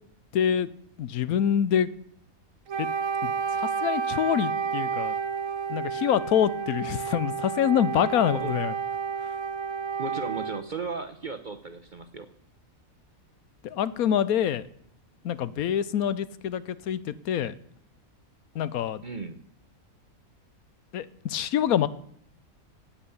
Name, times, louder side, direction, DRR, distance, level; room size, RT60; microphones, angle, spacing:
voice 1, 0.3-0.7 1.0-1.9 2.8-2.9 3.2-5.1 5.7-8.7 13.6-14.6 15.2-17.5 18.5-19.0 20.9-21.9, left 9 dB, 85° left, 17 dB, 1.2 m, -26 dB
Wind instrument woodwind instrument, 2.7-10.7, right 6 dB, 65° right, 1.2 m, -30 dB
voice 2, 10.0-12.3 19.0-19.4, right 4 dB, 40° right, 9 dB, 0.9 m, -35 dB
16.5 x 8.7 x 7.0 m, 0.69 s
omnidirectional pair, 1.5 m